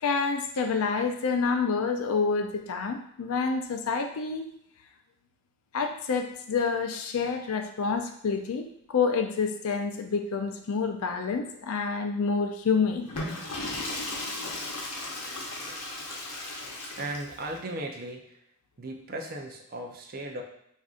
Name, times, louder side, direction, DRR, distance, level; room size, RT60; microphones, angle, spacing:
voice 1, 0.0-4.5 5.7-13.1, left 5 dB, 70° left, 5 dB, 0.4 m, -28 dB
Water / Toilet flush, 13.0-17.5, left 2 dB, 90° left, 0.8 m, -36 dB
voice 2, 17.0-18.4 18.8-20.4, right 1 dB, 40° right, 1 dB, 0.5 m, -36 dB
4.9 x 2.6 x 2.4 m, 0.74 s
head